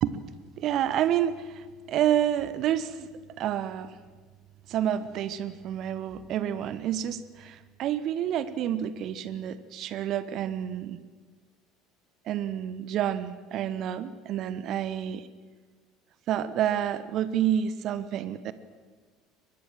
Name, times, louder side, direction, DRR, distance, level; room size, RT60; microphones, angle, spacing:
voice 1, 0.6-3.1 3.4-4.0 4.7-11.0 12.2-15.3 16.3-18.5, right 10 dB, 45° right, 15 dB, 1.1 m, -29 dB
23.0 x 21.0 x 7.7 m, 1.4 s
figure-of-eight pair, 65°, 0 cm